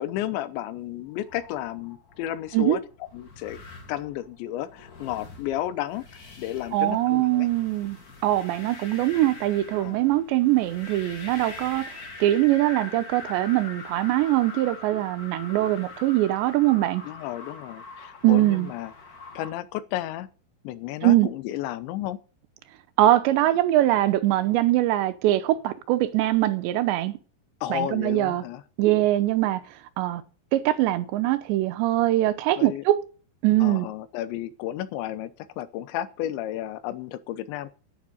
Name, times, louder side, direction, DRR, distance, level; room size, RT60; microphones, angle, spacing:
voice 1, 0.0-2.8 3.1-3.6 3.9-7.5 9.8-10.0 17.1-18.9 19.3-20.3 20.6-22.2 27.6-28.6 32.6-32.8 33.6-37.7, left 13 dB, 90° left, 3.2 m, -32 dB
sound 1, 1.0-19.5, left 4 dB, 50° left, 1.1 m, -43 dB
voice 2, 6.7-8.0 8.2-17.0 18.2-18.7 21.0-21.3 23.0-27.1 27.7-28.4 28.8-29.6 30.0-30.2 30.5-33.0 33.4-33.9, right 15 dB, 85° right, 3.0 m, -22 dB
10.5 x 10.0 x 6.7 m
omnidirectional pair, 5.2 m